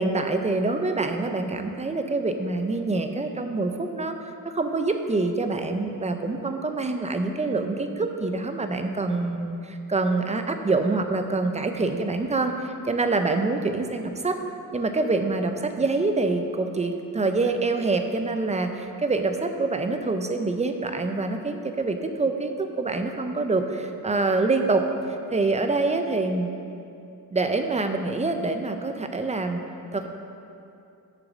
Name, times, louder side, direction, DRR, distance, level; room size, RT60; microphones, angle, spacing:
voice 1, 0.0-4.1 4.4-14.4 14.7-24.8 25.3-26.5 27.3-29.6 29.9-30.1, right 3 dB, 20° right, 6 dB, 0.5 m, -26 dB
7.8 x 6.6 x 6.1 m, 2.7 s
wide cardioid pair, 150°, 33 cm